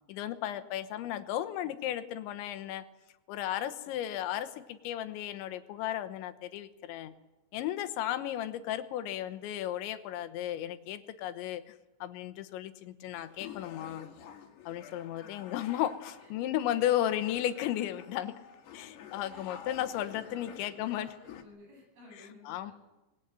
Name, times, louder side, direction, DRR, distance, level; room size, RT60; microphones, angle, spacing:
voice 1, 0.1-2.9 3.3-7.1 7.5-11.8 12.0-14.1 14.7-18.4 18.7-21.1 22.2-22.7, left 12 dB, 85° left, 10 dB, 3.4 m, -34 dB
sound 1, 13.1-21.4, left 8 dB, 70° left, 3.7 m, -50 dB
voice 2, 20.2-22.7, left 2 dB, 55° right, 1 dB, 9.9 m, -55 dB
24.0 x 20.5 x 9.0 m, 1.1 s
omnidirectional pair, 5.2 m